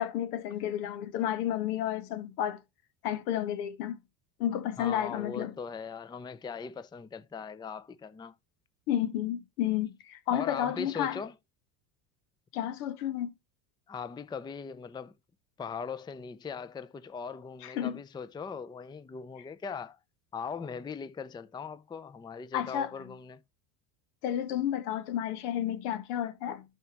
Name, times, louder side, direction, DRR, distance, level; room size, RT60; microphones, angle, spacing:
voice 1, 0.0-2.6 3.0-4.0 4.4-5.5 8.9-11.2 12.5-13.3 17.6-18.0 22.5-22.9 24.2-26.6, left 11 dB, 80° left, 1.5 m, -31 dB
voice 2, 4.8-8.4 10.3-11.3 13.9-15.2 15.6-20.0 20.3-23.4, left 6 dB, 10° left, 0.5 m, -40 dB
12.0 x 5.9 x 2.9 m
supercardioid pair, 95°, 45 cm